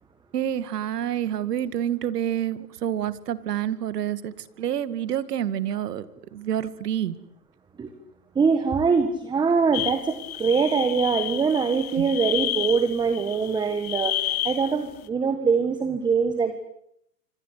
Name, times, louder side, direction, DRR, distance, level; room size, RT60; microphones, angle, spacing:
voice 1, 0.3-6.1 6.3-7.2 12.0-12.1, right 10 dB, 70° right, 14 dB, 2.3 m, -28 dB
voice 2, 8.3-14.1 14.4-16.6, right 5 dB, 10° right, 9 dB, 1.6 m, -23 dB
sound 1, 9.7-14.8, left 13 dB, 60° left, 1.9 m, -31 dB
26.0 x 26.0 x 8.4 m, 0.76 s
hypercardioid pair, 150°, 48 cm